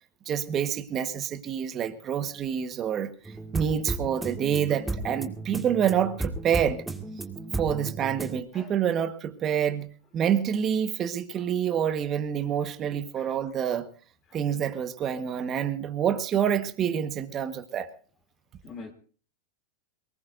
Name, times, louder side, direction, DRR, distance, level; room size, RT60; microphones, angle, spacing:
voice 1, 0.2-3.1 3.5-6.8 7.5-9.9 10.1-13.9 14.3-17.9, right 9 dB, 30° right, 1.4 m, -27 dB
sound 1, 3.3-8.4, right 2 dB, 10° right, 2.1 m, -34 dB
voice 2, 8.5-8.7 11.3-11.4 13.1-13.4 14.3-14.4 18.6-18.9, left 4 dB, 30° left, 3.0 m, -44 dB
22.5 x 20.0 x 2.7 m
supercardioid pair, 125°, 0 cm